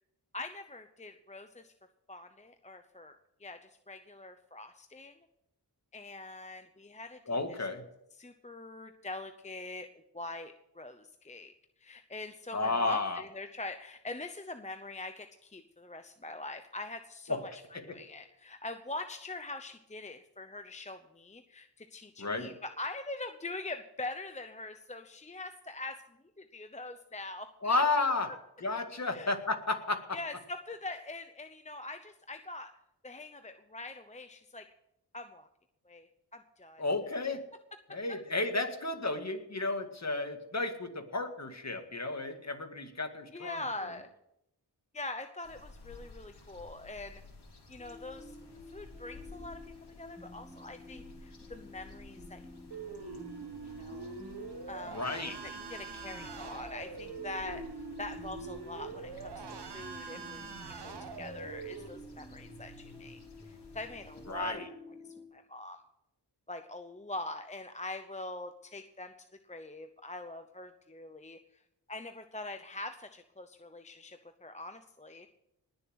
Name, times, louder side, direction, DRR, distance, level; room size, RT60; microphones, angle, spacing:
voice 1, 0.3-1.7 2.1-5.1 5.9-7.6 8.1-9.9 10.1-11.5 11.8-17.5 17.8-26.0 26.4-27.8 29.1-29.3 30.1-32.7 33.0-34.7 35.1-35.5 35.8-36.8 38.6-38.7 43.3-44.1 44.9-47.2 47.7-48.4 48.7-49.6 49.9-52.4 53.0-53.1 53.8-54.1 54.7-55.0 55.4-63.2 63.5-64.8 65.0-65.8 66.5-71.6 71.9-75.3, left 2 dB, 15° left, 8 dB, 0.8 m, -43 dB
voice 2, 7.3-7.8 12.5-13.2 17.3-17.4 17.7-18.0 22.2-22.5 27.6-28.3 28.6-30.2 36.8-37.4 37.9-43.6 54.9-55.4 64.3-64.7, left 3 dB, 40° left, 6 dB, 1.9 m, -32 dB
sound 1, 45.4-64.5, left 2 dB, 70° left, 2.9 m, -54 dB
sound 2, 47.8-65.3, left 3 dB, ahead, 2.4 m, -51 dB
sound 3, 52.7-61.9, right 5 dB, 75° right, 1.3 m, -44 dB
19.5 x 7.0 x 6.4 m, 0.81 s
wide cardioid pair, 80°, 41 cm